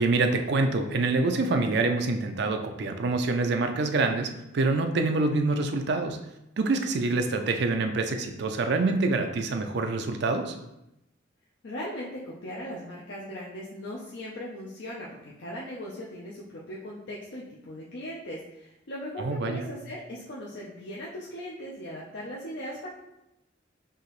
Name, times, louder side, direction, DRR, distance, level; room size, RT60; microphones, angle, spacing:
voice 1, 0.0-6.2 6.6-10.5 19.2-19.6, right 3 dB, 55° right, 5 dB, 0.4 m, -26 dB
voice 2, 11.6-22.9, equal, 60° left, -5 dB, 0.6 m, -39 dB
4.7 x 2.8 x 3.1 m, 0.89 s
head